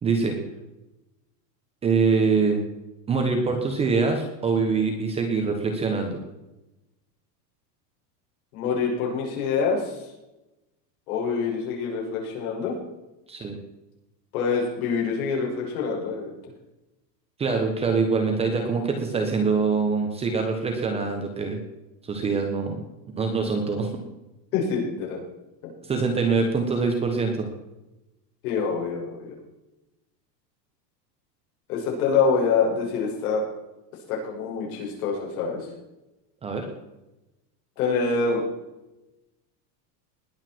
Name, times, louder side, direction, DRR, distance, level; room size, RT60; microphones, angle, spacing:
voice 1, 0.0-0.3 1.8-2.6 3.1-6.2 13.3-13.6 17.4-21.6 22.0-22.8 23.2-23.9 25.8-27.5 36.4-36.7, right 4 dB, 10° right, 4 dB, 1.1 m, -24 dB
voice 2, 8.5-10.0 11.1-12.8 14.3-16.3 24.5-25.2 28.4-29.3 31.7-33.4 34.1-35.7 37.8-38.4, left 5 dB, 60° left, -1 dB, 6.2 m, -25 dB
20.5 x 8.5 x 4.6 m, 0.98 s
supercardioid pair, 170°, 50 cm